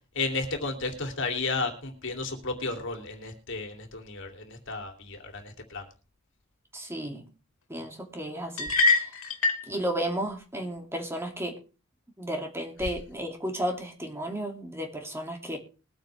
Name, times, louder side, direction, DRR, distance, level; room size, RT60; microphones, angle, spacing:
voice 1, 0.1-5.8 12.8-12.9, left 3 dB, 65° left, 4 dB, 2.8 m, -33 dB
voice 2, 6.7-7.2 7.7-9.1 9.7-11.6 12.2-15.6, right 1 dB, 10° right, 3 dB, 2.4 m, -33 dB
sound 1, 8.6-9.7, left 3 dB, 80° left, 2.3 m, -24 dB
21.5 x 8.9 x 3.3 m, 0.34 s
head